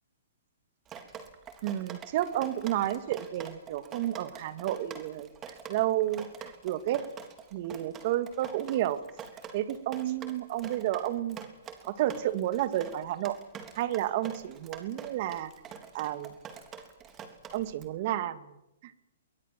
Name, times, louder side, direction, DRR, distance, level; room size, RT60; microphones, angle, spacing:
Drip, 0.9-17.9, right 7 dB, 25° right, 3.5 m, -45 dB
voice 1, 1.6-5.3 5.7-7.0 7.5-9.0 9.5-11.4 11.9-13.4 13.8-15.5 15.9-16.3 17.5-18.5 18.8-19.0, right 13 dB, 50° right, 12 dB, 2.2 m, -31 dB
24.0 x 23.0 x 7.7 m, 0.88 s
hypercardioid pair, 130°, 0 cm